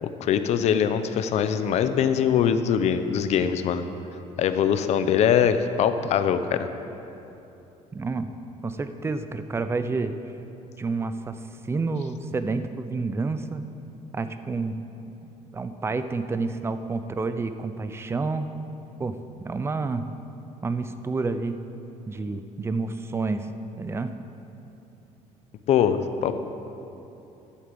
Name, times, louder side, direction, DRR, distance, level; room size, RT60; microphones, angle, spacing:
voice 1, 0.0-3.8 4.4-6.7 25.7-26.4, left 8 dB, 55° left, 10 dB, 0.7 m, -22 dB
voice 2, 7.9-8.3 8.6-10.1 10.8-11.3 11.6-13.7 14.1-14.7 15.5-18.5 19.0-20.1 20.6-21.6 22.1-23.5 23.8-24.1, right 3 dB, 20° right, 10 dB, 0.6 m, -29 dB
11.5 x 8.4 x 7.6 m, 2.9 s
cardioid pair, 130°, 13 cm